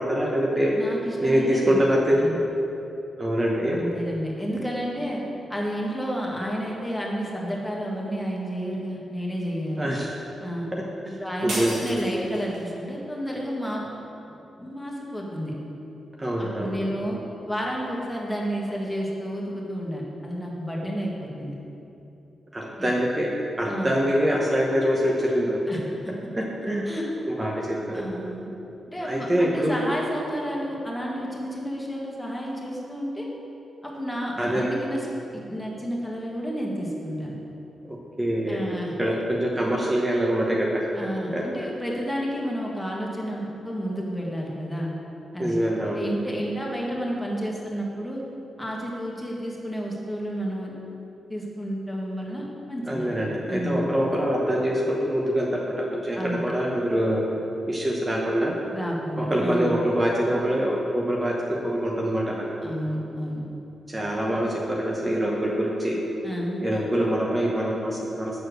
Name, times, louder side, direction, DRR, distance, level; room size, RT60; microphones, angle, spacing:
voice 1, 0.0-0.7 1.2-2.2 3.2-3.8 9.8-10.1 11.1-12.0 16.2-16.7 22.5-23.3 23.6-25.6 26.4-26.8 27.3-28.0 29.0-29.8 34.4-34.7 37.8-38.6 39.0-40.9 41.3-41.4 45.4-46.0 52.9-57.2 57.7-58.5 59.2-62.5 63.9-66.0 66.6-68.3, equal, 25° right, -3 dB, 1.0 m, -25 dB
voice 2, 0.8-1.8 2.1-2.4 3.7-5.2 5.5-9.9 10.4-10.7 11.2-13.9 14.3-15.5 16.4-17.2 17.4-21.5 22.8-22.9 23.7-24.0 25.7-26.1 26.8-27.1 27.9-28.5 28.9-33.3 33.8-35.1 35.5-37.4 38.5-38.9 40.9-44.9 45.3-45.6 45.9-48.2 48.6-50.7 51.3-53.1 53.5-53.9 56.1-56.5 58.7-59.8 62.6-63.4 66.2-66.6, equal, 10° left, -3 dB, 1.7 m, -31 dB
sound 1, 11.5-12.7, right 1 dB, 80° right, 1.8 m, -33 dB
6.6 x 4.4 x 6.4 m, 3.0 s
supercardioid pair, 55°, 0 cm